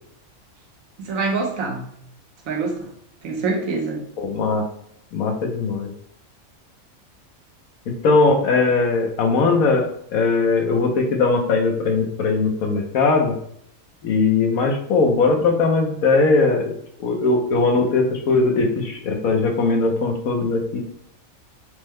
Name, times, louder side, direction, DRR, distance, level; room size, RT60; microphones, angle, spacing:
voice 1, 1.0-1.9 2.5-2.9 3.2-4.0, right 3 dB, 75° right, 1 dB, 1.3 m, -25 dB
voice 2, 4.2-4.6 5.1-5.9 7.9-9.9 10.1-13.4 14.0-16.7 17.0-20.8, left 3 dB, 85° left, 3 dB, 1.3 m, -19 dB
6.4 x 2.2 x 3.5 m, 0.70 s
omnidirectional pair, 1.4 m